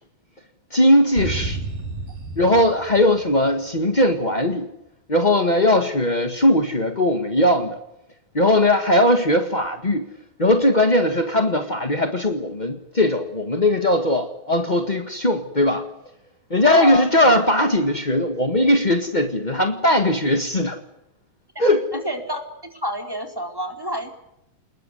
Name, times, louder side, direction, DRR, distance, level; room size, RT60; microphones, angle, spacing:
voice 1, 0.7-1.6 2.4-4.7 5.1-7.8 8.3-10.1 10.4-15.8 16.5-20.8 21.6-21.9, left 1 dB, 45° left, 6 dB, 0.5 m, -19 dB
sound 1, 1.2-3.9, right 3 dB, 80° right, 4.6 m, -31 dB
voice 2, 16.7-17.1 21.9-24.1, equal, 5° right, 4 dB, 3.7 m, -27 dB
27.5 x 21.0 x 8.1 m, 0.86 s
omnidirectional pair, 3.9 m